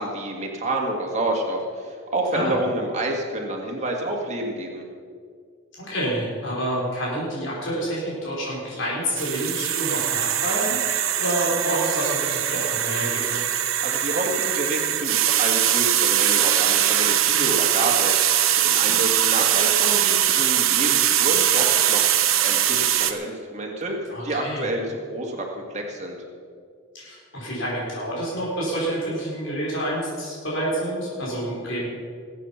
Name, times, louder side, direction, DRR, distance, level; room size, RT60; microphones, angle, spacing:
voice 1, 0.0-4.8 13.8-22.0 22.4-26.2, right 1 dB, 35° right, 0 dB, 2.2 m, -28 dB
voice 2, 5.7-13.4 24.1-24.6 26.9-31.9, right 1 dB, 70° left, -5 dB, 4.5 m, -28 dB
sound 1, 9.2-23.1, right 11 dB, 85° right, 1.0 m, -21 dB
20.5 x 8.4 x 5.8 m, 2.2 s
head